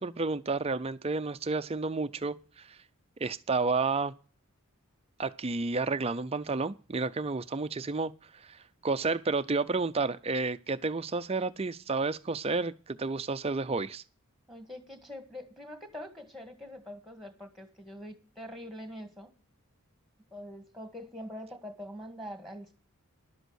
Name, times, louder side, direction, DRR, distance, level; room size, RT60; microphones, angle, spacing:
voice 1, 0.0-2.8 3.2-4.1 5.2-8.1 8.4-14.0, right 3 dB, 25° right, 0.5 m, -31 dB
voice 2, 14.5-19.3 20.3-22.7, equal, ahead, 1.8 m, -44 dB
11.5 x 8.1 x 6.3 m
head